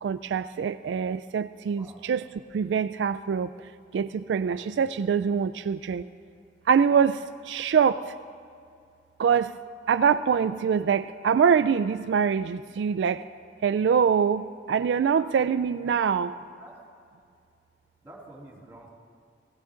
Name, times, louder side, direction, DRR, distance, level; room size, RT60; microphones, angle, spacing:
voice 1, 0.0-2.2 2.5-3.5 3.9-6.1 6.7-8.1 9.2-9.6 9.9-13.3 13.6-16.3, right 7 dB, 70° right, 12 dB, 0.3 m, -24 dB
voice 2, 4.5-5.3 15.8-16.1 16.6-16.7 18.0-18.9, right 1 dB, 15° right, -4 dB, 3.3 m, -49 dB
19.0 x 16.0 x 3.8 m, 2.3 s
head